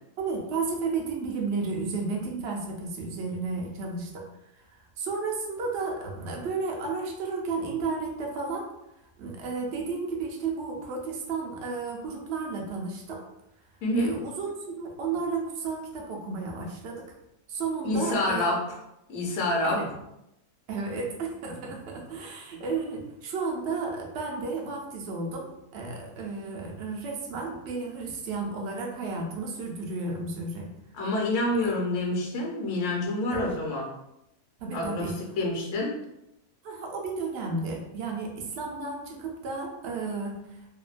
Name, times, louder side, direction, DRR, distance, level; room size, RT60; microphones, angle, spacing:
voice 1, 0.2-4.2 4.6-4.7 5.0-8.7 9.2-13.2 13.9-17.1 17.5-18.5 19.6-19.9 20.7-30.7 31.6-31.7 33.3-33.5 34.6-35.2 36.6-40.7, right 4 dB, 70° right, 0 dB, 0.6 m, -33 dB
voice 2, 13.8-14.2 17.8-18.8 19.1-19.8 30.9-33.9 34.7-36.0, left 2 dB, 60° left, -2 dB, 0.9 m, -27 dB
2.7 x 2.2 x 2.4 m, 0.85 s
omnidirectional pair, 1.6 m